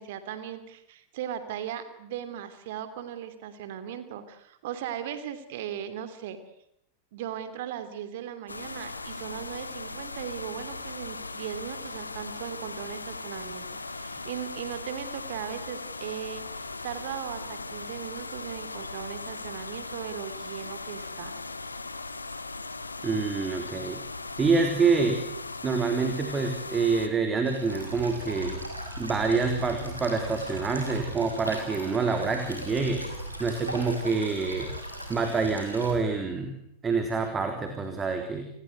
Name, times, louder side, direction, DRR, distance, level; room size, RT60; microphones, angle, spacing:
voice 1, 0.0-6.4 7.1-21.3, right 10 dB, 55° right, 11 dB, 2.8 m, -38 dB
sound 1, 8.5-27.1, left 3 dB, 80° left, 2.1 m, -38 dB
voice 2, 23.0-24.0 24.4-25.2 25.6-28.6 29.0-33.0 33.4-34.7 35.1-36.5 36.8-38.4, right 4 dB, 20° right, 5 dB, 3.8 m, -26 dB
sound 2, 27.4-35.9, equal, 90° right, 6.5 m, -38 dB
30.0 x 21.0 x 8.0 m, 0.76 s
figure-of-eight pair, 90°, 0 cm